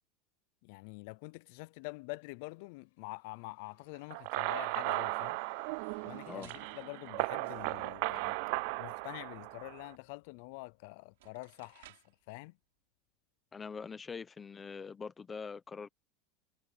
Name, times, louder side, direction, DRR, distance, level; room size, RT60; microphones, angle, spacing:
voice 1, 0.6-5.4 6.0-8.4 8.8-12.0 12.3-12.5, left 26 dB, 50° left, 0.4 m, -46 dB
sound 1, 2.4-7.1 7.4-12.3 12.6-12.7, left 19 dB, 70° left, 5.3 m, -68 dB
ns rubberarm, 4.1-9.9, right 27 dB, 50° right, 0.3 m, -36 dB
sound 2, 5.7-8.1 10.5-10.6 11.1-12.3, right 17 dB, 85° right, 4.2 m, -61 dB
voice 2, 13.5-15.9, left 5 dB, 10° left, 1.0 m, -43 dB
supercardioid pair, 175°, 0 cm